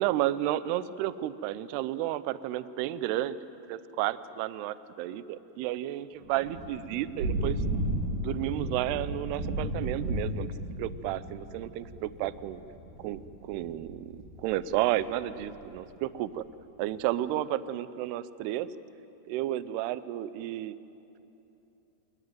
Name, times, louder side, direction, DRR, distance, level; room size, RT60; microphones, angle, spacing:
voice 1, 0.0-3.4 3.7-7.6 8.2-10.5 10.8-12.6 13.0-16.4 16.8-18.7 19.3-20.8, right 13 dB, 80° right, 15 dB, 2.7 m, -32 dB
Thunder / Rain, 6.2-15.8, right 1 dB, 60° right, 4.2 m, -35 dB
28.0 x 20.5 x 9.4 m, 2.9 s
omnidirectional pair, 4.9 m